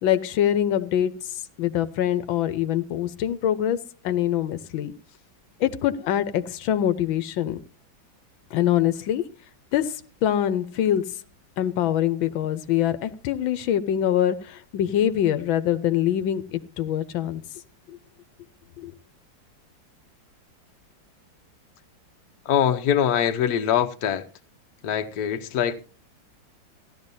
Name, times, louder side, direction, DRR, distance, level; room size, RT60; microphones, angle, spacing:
voice 1, 0.0-4.9 5.6-7.6 8.5-9.2 9.7-11.2 11.6-17.4 17.9-18.0 18.8-18.9, left 11 dB, 85° left, 1.6 m, -24 dB
voice 2, 22.4-24.3 24.8-25.8, left 9 dB, 60° left, 1.3 m, -23 dB
16.0 x 12.5 x 2.7 m
omnidirectional pair, 2.1 m